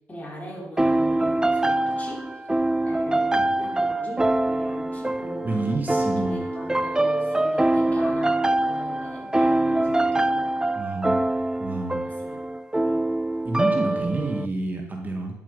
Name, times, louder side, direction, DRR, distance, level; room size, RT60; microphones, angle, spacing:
voice 1, 0.1-2.4 2.8-10.5 12.0-12.4 12.8-13.1 13.9-14.4, left 1 dB, 25° left, -2 dB, 4.3 m, -39 dB
sound 1, 0.8-14.5, right 2 dB, 10° right, 0.5 m, -24 dB
voice 2, 5.4-6.4 10.8-11.2 11.6-12.0 13.4-15.4, right 2 dB, 30° right, 2 dB, 1.8 m, -28 dB
10.5 x 7.6 x 5.3 m, 1.1 s
cardioid pair, 70°, 6 cm